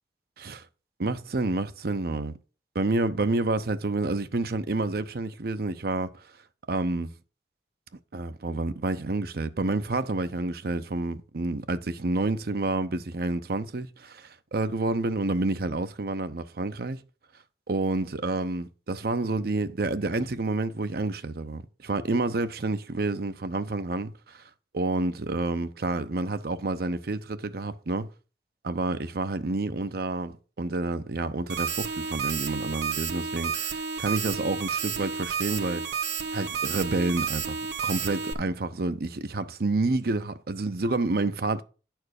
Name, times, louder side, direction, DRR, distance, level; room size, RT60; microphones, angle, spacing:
voice 1, 1.0-2.4 2.7-6.1 6.7-7.1 8.1-17.0 17.7-24.4 24.7-28.1 28.6-35.9 36.3-41.6, right 2 dB, 60° right, 0.7 m, -29 dB
sound 1, 31.5-38.3, right 6 dB, 85° right, 1.4 m, -31 dB
9.7 x 4.6 x 6.4 m
head